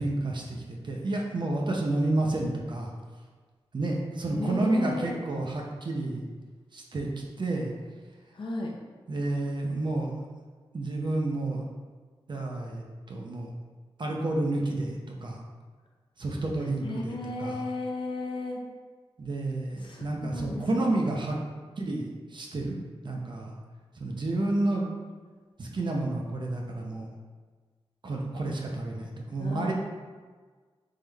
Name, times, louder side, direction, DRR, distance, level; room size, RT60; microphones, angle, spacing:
voice 1, 0.0-2.9 3.7-6.2 6.7-7.1 7.4-7.7 9.1-10.1 10.7-11.6 12.3-13.5 14.0-15.4 16.2-17.6 19.2-21.4 21.8-22.7 23.0-23.5 24.0-24.9 25.6-27.1 28.0-29.7, right 2 dB, 50° right, 0 dB, 0.7 m, -30 dB
voice 2, 4.3-5.2 8.3-8.7 16.8-18.6 19.8-20.9 29.4-29.7, left 2 dB, 55° left, -1 dB, 0.7 m, -34 dB
3.7 x 3.1 x 3.4 m, 1.5 s
wide cardioid pair, 85°, 10 cm